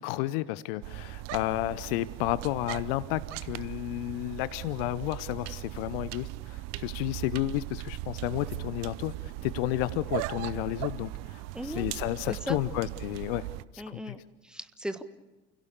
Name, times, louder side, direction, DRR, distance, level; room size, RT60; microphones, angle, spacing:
voice 1, 0.0-13.5 13.7-14.1, left 16 dB, 55° left, 18 dB, 0.8 m, -32 dB
sound 1, 0.8-13.6, right 17 dB, 50° right, 0.8 m, -38 dB
voice 2, 11.5-11.9 12.3-12.6 13.8-14.2 14.4-15.0, equal, ahead, 10 dB, 1.5 m, -37 dB
30.0 x 17.0 x 6.9 m, 1.1 s
figure-of-eight pair, 70°, 34 cm